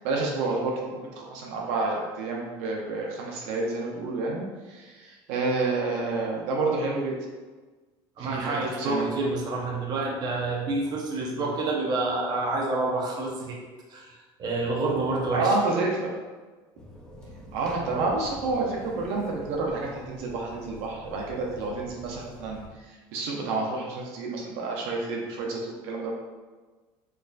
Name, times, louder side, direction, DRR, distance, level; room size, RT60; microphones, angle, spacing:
voice 1, 0.0-7.1 8.2-9.1 15.3-16.1 17.5-26.2, right 3 dB, 80° right, -1 dB, 0.7 m, -29 dB
voice 2, 8.2-13.6 13.9-15.6, right 2 dB, 40° right, -1 dB, 0.6 m, -28 dB
sound 1, 16.8-22.7, equal, 5° left, 0.5 m, -46 dB
4.6 x 2.5 x 2.3 m, 1.3 s
cardioid pair, 125°, 11 cm